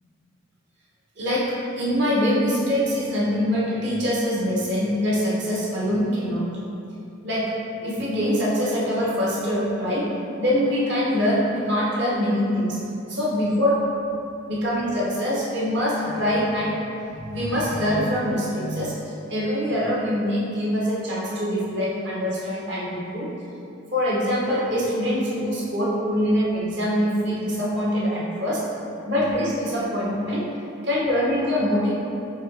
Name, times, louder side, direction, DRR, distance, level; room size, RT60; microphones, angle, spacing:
voice 1, 1.2-1.5 1.8-6.5 7.2-7.5 7.8-10.1 10.4-12.8 13.1-13.8 14.5-16.8 17.1-23.3 23.9-28.6 29.1-30.5 30.8-32.0, equal, 55° right, -6 dB, 1.1 m, -24 dB
4.5 x 2.9 x 3.8 m, 2.7 s
head